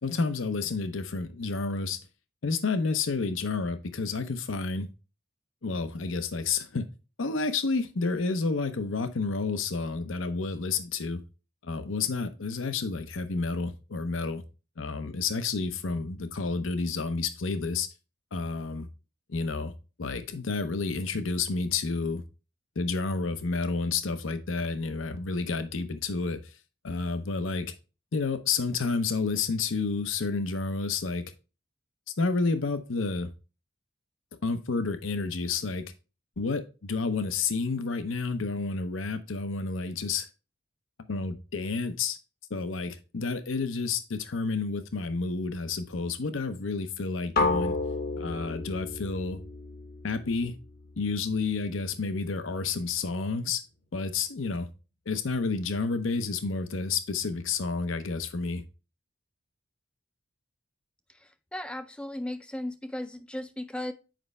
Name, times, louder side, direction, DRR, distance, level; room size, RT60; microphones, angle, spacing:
voice 1, 0.0-2.0 2.4-4.9 5.6-6.9 7.2-11.2 11.6-14.4 14.8-17.9 18.3-18.9 19.3-19.7 20.0-22.2 22.8-26.5 26.8-27.7 28.1-31.2 32.2-33.3 34.4-35.8 36.4-40.3 41.1-42.2 42.5-47.8 48.2-49.4 50.0-50.5 51.0-53.6 53.9-54.7 55.1-58.6, left 4 dB, 85° left, 0.7 m, -30 dB
sound 1, 47.4-51.3, left 3 dB, 50° left, 0.8 m, -31 dB
voice 2, 61.5-63.9, left 1 dB, 5° left, 0.4 m, -36 dB
7.6 x 5.3 x 3.2 m
head